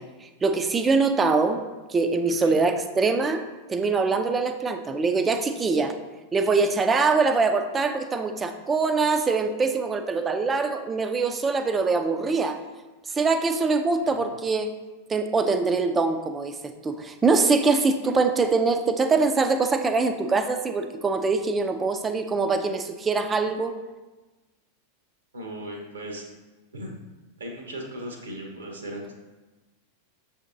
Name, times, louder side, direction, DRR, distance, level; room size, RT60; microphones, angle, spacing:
voice 1, 0.0-1.6 1.9-3.4 3.7-5.9 6.3-12.6 13.1-14.7 15.1-23.7, right 4 dB, 15° right, 8 dB, 0.3 m, -23 dB
voice 2, 14.0-14.3 25.3-26.2 26.7-26.9 27.4-29.1, equal, 75° right, 1 dB, 0.8 m, -37 dB
6.3 x 2.7 x 2.6 m, 1.2 s
figure-of-eight pair, 90°, 0 cm